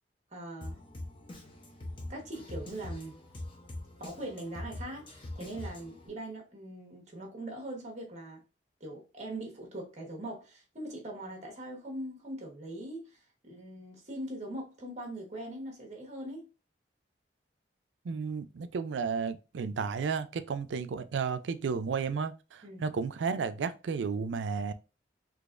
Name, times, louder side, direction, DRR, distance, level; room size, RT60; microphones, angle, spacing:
voice 1, 0.3-0.8 2.1-3.2 4.0-8.4 8.8-16.5 22.6-22.8, right 1 dB, 40° right, 1.1 m, -41 dB
Drum kit, 0.6-6.1, left 1 dB, 30° left, 0.6 m, -43 dB
voice 2, 18.0-24.7, right 5 dB, 80° right, 0.4 m, -33 dB
3.9 x 2.8 x 2.4 m
head